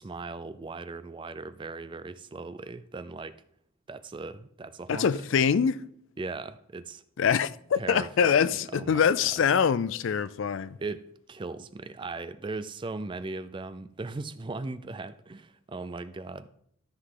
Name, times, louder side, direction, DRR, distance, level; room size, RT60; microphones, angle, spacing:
voice 1, 0.0-3.4 3.9-5.1 6.2-7.0 7.8-9.3 10.8-16.5, right 3 dB, 20° right, 0.3 m, -38 dB
voice 2, 4.9-5.8 7.2-10.8, left 7 dB, 60° left, 0.3 m, -24 dB
13.0 x 5.7 x 3.8 m
head